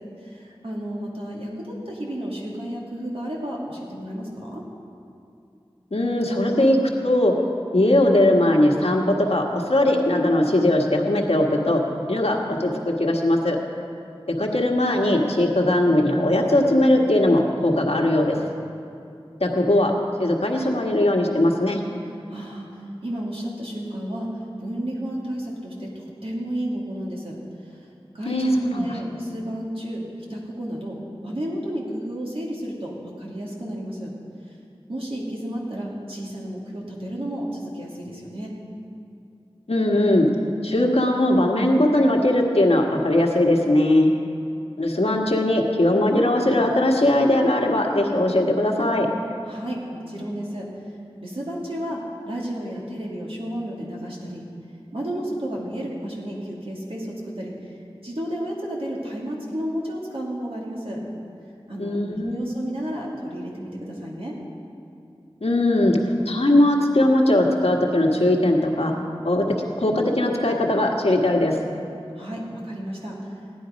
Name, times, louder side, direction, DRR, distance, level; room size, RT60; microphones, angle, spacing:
voice 1, 0.2-4.6 22.3-27.4 27.6-27.9 28.1-30.0 30.3-34.1 34.9-38.5 49.5-50.7 51.2-54.4 54.9-61.0 61.7-64.3 72.1-73.3, equal, 65° right, -4 dB, 2.7 m, -32 dB
voice 2, 5.9-7.3 7.7-11.8 12.1-12.7 13.0-13.6 14.4-18.4 19.4-19.9 20.2-21.8 28.2-28.9 39.7-40.3 40.6-44.1 44.8-49.1 61.8-62.5 65.4-66.0 66.2-68.9 69.2-69.4 69.8-71.6, left 1 dB, 80° left, 0 dB, 1.5 m, -19 dB
16.0 x 10.5 x 5.2 m, 2.6 s
wide cardioid pair, 40°, 10 cm